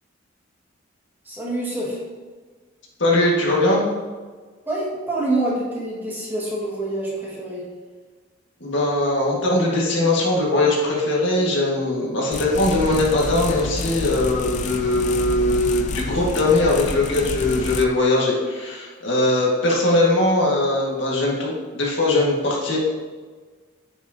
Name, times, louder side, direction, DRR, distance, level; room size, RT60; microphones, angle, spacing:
voice 1, 1.3-2.0 4.7-7.6, right 1 dB, 10° right, -6 dB, 1.8 m, -26 dB
voice 2, 3.0-3.8 8.6-22.8, left 2 dB, 65° left, -3 dB, 1.8 m, -20 dB
sound 1, 12.3-17.8, left 4 dB, 40° left, 0.3 m, -29 dB
9.3 x 6.2 x 2.8 m, 1.4 s
head